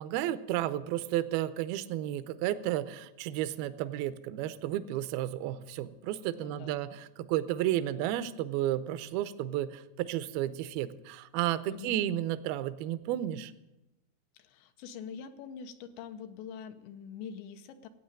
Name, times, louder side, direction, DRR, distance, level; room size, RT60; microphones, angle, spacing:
voice 1, 0.0-13.5, right 13 dB, 80° right, 13 dB, 2.2 m, -32 dB
voice 2, 6.4-6.8 11.7-12.0 14.3-17.9, left 7 dB, 85° left, 8 dB, 3.1 m, -44 dB
15.0 x 8.8 x 8.8 m, 0.96 s
omnidirectional pair, 5.0 m